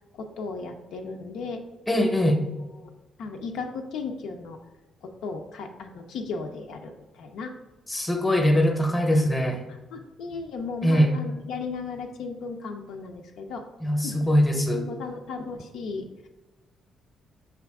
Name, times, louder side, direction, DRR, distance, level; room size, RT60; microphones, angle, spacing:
voice 1, 0.2-1.6 2.1-2.3 2.8-2.9 3.2-4.6 5.0-7.5 9.9-13.6 14.0-14.2 14.8-16.1, left 4 dB, 80° left, 3 dB, 0.4 m, -35 dB
voice 2, 1.9-2.4 7.9-9.6 10.8-11.1 13.8-14.9, equal, 15° left, 4 dB, 0.7 m, -22 dB
5.7 x 2.3 x 3.5 m, 1.1 s
cardioid pair, 90°, 0 cm